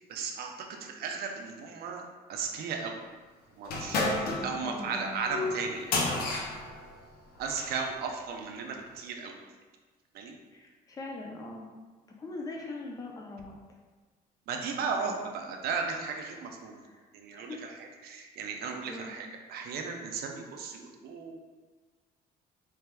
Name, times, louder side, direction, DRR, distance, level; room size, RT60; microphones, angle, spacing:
voice 1, 0.1-2.0 2.3-3.0 3.6-6.4 7.4-9.4 10.1-10.3 14.5-16.8 17.1-17.7 18.0-21.4, right 5 dB, 70° right, 2 dB, 0.5 m, -36 dB
sound 1, 3.6-7.8, left 2 dB, 70° left, 0.6 m, -32 dB
voice 2, 4.2-5.2 10.5-11.7 12.2-13.6 15.0-15.3 16.8-17.1 17.3-17.6 18.9-19.1, left 3 dB, 20° left, 0 dB, 0.5 m, -42 dB
3.3 x 3.3 x 2.2 m, 1.3 s
cardioid pair, 110°, 17 cm